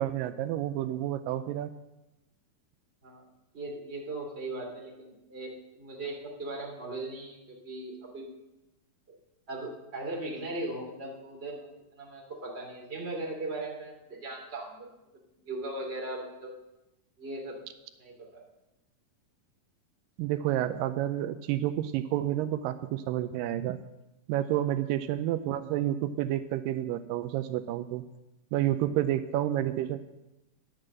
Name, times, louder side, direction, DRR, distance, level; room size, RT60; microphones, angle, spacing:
voice 1, 0.0-1.7 20.2-23.8 24.3-28.0 28.5-30.0, right 12 dB, 85° right, 10 dB, 2.2 m, -30 dB
voice 2, 3.5-8.3 9.5-14.9 15.4-16.5 17.2-17.6 18.0-18.4 28.5-28.6, right 2 dB, 20° right, -2 dB, 2.7 m, -38 dB
11.0 x 7.8 x 7.7 m, 0.95 s
omnidirectional pair, 3.9 m